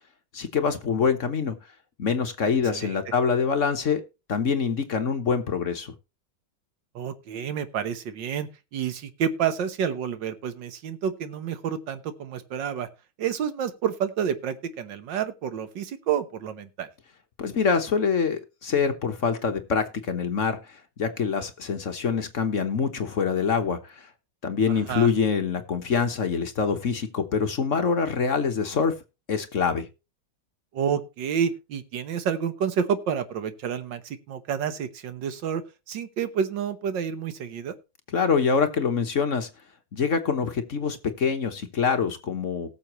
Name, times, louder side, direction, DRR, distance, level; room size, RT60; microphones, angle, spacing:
voice 1, 0.3-1.5 2.0-4.0 4.3-5.9 17.4-24.1 24.4-29.0 29.3-29.9 38.1-39.5 39.9-42.8, left 5 dB, 45° left, 7 dB, 1.1 m, -25 dB
voice 2, 7.0-12.9 13.2-16.9 24.7-25.1 30.7-35.6 35.9-37.8, right 8 dB, 65° right, 11 dB, 1.7 m, -29 dB
18.5 x 7.0 x 3.0 m, 0.28 s
omnidirectional pair, 2.2 m